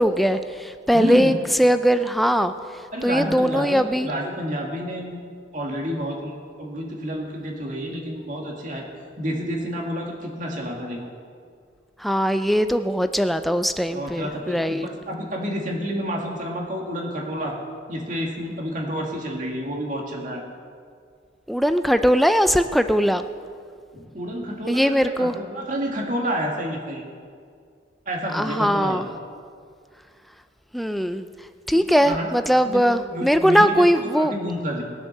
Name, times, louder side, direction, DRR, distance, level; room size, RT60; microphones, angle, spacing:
voice 1, 0.0-1.3 1.6-2.5 3.0-4.1 12.0-14.9 21.5-23.2 24.7-25.3 28.3-29.0 30.7-31.2 31.7-34.3, equal, ahead, 9 dB, 0.4 m, -20 dB
voice 2, 0.9-1.4 2.9-5.2 5.5-8.9 9.2-11.1 13.9-17.6 17.9-20.4 23.9-27.1 28.1-29.0 31.7-32.3 32.6-32.8 33.1-33.9 34.1-34.8, equal, 40° right, 0 dB, 2.1 m, -29 dB
20.0 x 7.3 x 6.6 m, 2.2 s
head